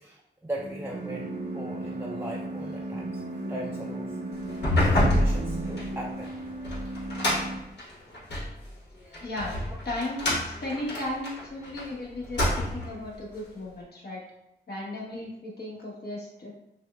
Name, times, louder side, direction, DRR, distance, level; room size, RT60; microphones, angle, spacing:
voice 1, 0.0-3.2 3.5-4.2 4.8-6.3 6.7-6.9 7.2-7.3 9.1-9.2, right 1 dB, 15° right, -3 dB, 0.4 m, -39 dB
sound 1, 0.6-7.6, right 2 dB, 75° right, 0.6 m, -35 dB
sound 2, 4.5-8.5 9.1-11.9 12.2-13.0, left 1 dB, 85° left, 1.2 m, -27 dB
voice 2, 9.2-9.6 9.8-14.2 14.7-16.5, left 1 dB, 65° left, -4 dB, 1.2 m, -35 dB
5.9 x 2.1 x 2.3 m, 0.80 s
wide cardioid pair, 90°, 17 cm